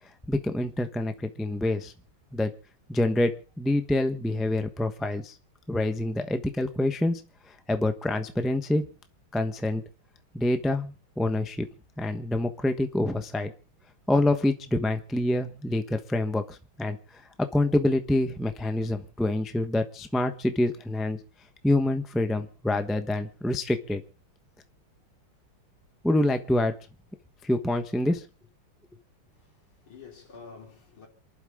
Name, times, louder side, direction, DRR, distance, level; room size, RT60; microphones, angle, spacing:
voice 1, 0.3-1.9 2.3-2.5 2.9-5.4 5.7-7.2 7.7-8.8 9.3-9.8 10.3-11.7 12.0-13.5 14.1-17.0 17.4-21.2 21.6-24.0 26.0-26.7 27.4-28.2, left 1 dB, ahead, 0.5 m, -26 dB
voice 2, 29.3-31.1, left 5 dB, 70° left, 4.0 m, -49 dB
28.0 x 11.5 x 3.7 m
omnidirectional pair, 2.4 m